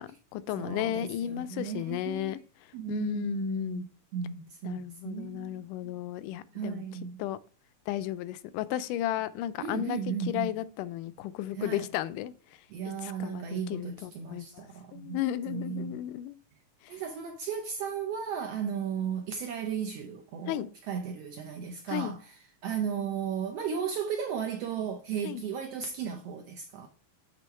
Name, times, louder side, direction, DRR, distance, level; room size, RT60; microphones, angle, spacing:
voice 1, 0.0-2.4 2.9-3.9 4.6-6.8 7.2-7.4 7.9-10.0 10.3-12.3 12.9-14.6 14.9-16.4 16.8-17.0 20.5-20.7 21.9-22.1 25.2-25.4, left 13 dB, 85° left, 2.1 m, -34 dB
voice 2, 0.5-2.4 2.7-6.0 6.5-7.2 9.6-10.6 11.5-11.9 12.7-15.2 15.5-16.0 16.9-26.9, right 7 dB, 80° right, 1.4 m, -35 dB
8.2 x 3.5 x 5.6 m
omnidirectional pair, 3.7 m